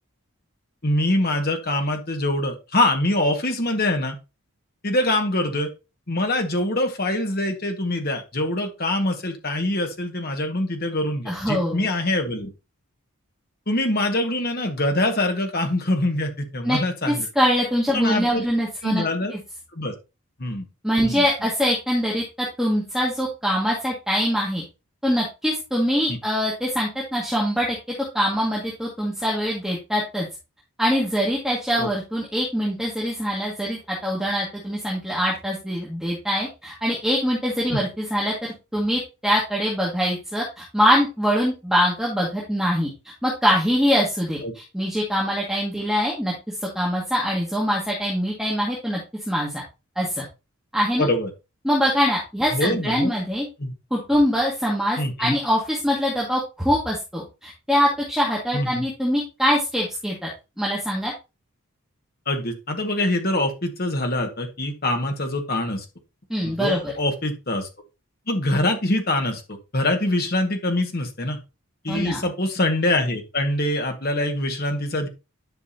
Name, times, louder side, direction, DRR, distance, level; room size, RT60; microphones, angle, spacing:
voice 1, 0.8-4.2 4.8-5.7 6.1-12.5 13.7-17.3 17.9-18.4 18.8-19.3 19.7-19.9 20.4-20.6 21.0-21.2 26.1-26.2 31.8-31.9 37.7-37.8 44.4-44.5 51.0-51.3 52.5-53.1 53.6-53.7 55.0-55.3 58.5-58.8 62.2-65.8 66.4-67.7 68.3-69.4 69.7-71.4 71.8-75.1, left 1 dB, 45° left, 4 dB, 1.7 m, -24 dB
voice 2, 11.3-11.9 16.6-16.8 17.1-19.0 19.3-19.4 20.8-24.6 25.0-27.8 28.1-30.3 30.8-42.9 43.2-49.0 49.3-49.6 50.0-50.3 50.7-51.1 51.6-53.5 53.9-60.3 60.6-61.1 66.3-66.9 71.9-72.2, equal, ahead, -4 dB, 2.0 m, -23 dB
10.5 x 6.0 x 2.9 m, 0.27 s
head